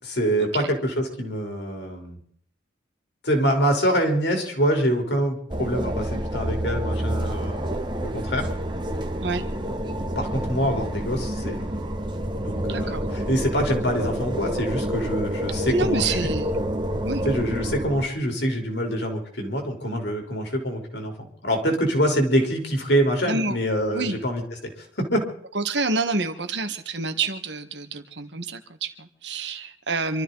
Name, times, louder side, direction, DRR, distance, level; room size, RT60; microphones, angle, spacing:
voice 1, 0.0-2.2 3.2-7.7 8.0-8.5 10.2-11.7 12.3-16.3 17.2-24.4 24.8-25.3, equal, 65° left, 2 dB, 3.7 m, -25 dB
sound 1, 5.5-18.1, equal, 25° right, 1.3 m, -28 dB
voice 2, 12.7-13.0 15.6-16.5 17.0-17.2 23.3-23.6 23.9-24.2 25.5-30.2, right 3 dB, 70° right, 8 dB, 1.6 m, -28 dB
26.0 x 13.0 x 4.0 m, 0.63 s
head